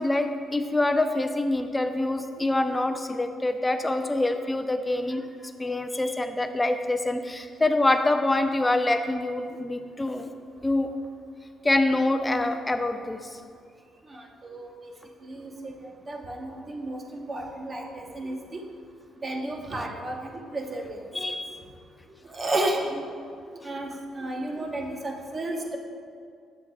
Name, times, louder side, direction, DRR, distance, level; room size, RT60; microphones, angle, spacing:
voice 1, 0.0-5.3 5.6-10.3 10.6-10.9 11.6-13.4 21.1-21.5, left 2 dB, 15° left, 7 dB, 0.4 m, -25 dB
voice 2, 14.1-14.9 15.2-15.5 16.1-18.6 19.2-21.0 22.3-23.0 23.6-23.9 24.1-25.8, right 1 dB, 30° right, 1 dB, 0.9 m, -32 dB
7.7 x 7.2 x 2.3 m, 2.2 s
cardioid pair, 90°, 0 cm